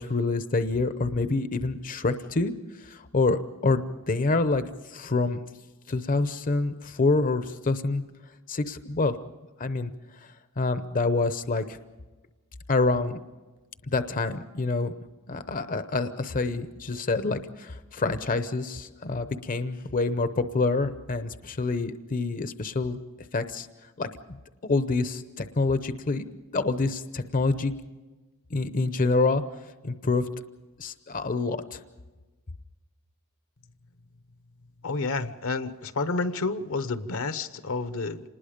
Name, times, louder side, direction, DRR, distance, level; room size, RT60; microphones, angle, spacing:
voice 1, 0.0-2.5 2.8-5.4 5.9-8.0 8.5-9.2 9.6-9.9 10.2-11.8 12.7-13.2 13.9-14.9 15.3-23.0 23.3-23.7 24.0-24.4 24.6-26.2 26.5-27.7 28.5-29.4 29.8-30.3 30.8-31.8, left 3 dB, 40° left, 10 dB, 0.7 m, -27 dB
voice 2, 34.8-38.2, left 3 dB, 70° left, 12 dB, 0.9 m, -30 dB
26.5 x 20.0 x 5.2 m, 1.2 s
head